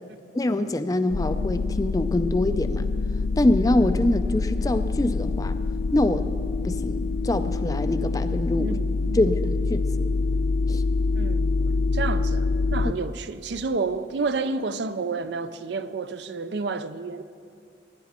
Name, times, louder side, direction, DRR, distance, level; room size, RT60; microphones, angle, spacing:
voice 1, 0.3-2.9 3.4-5.6 5.9-6.3 6.6-8.8 9.1-10.0 10.7-10.8, left 1 dB, 20° left, 0.4 m, -24 dB
sound 1, 1.1-12.9, left 3 dB, 75° left, 0.5 m, -25 dB
voice 2, 8.6-9.2 11.1-17.2, right 4 dB, 70° right, 0.5 m, -30 dB
16.0 x 10.5 x 4.3 m
head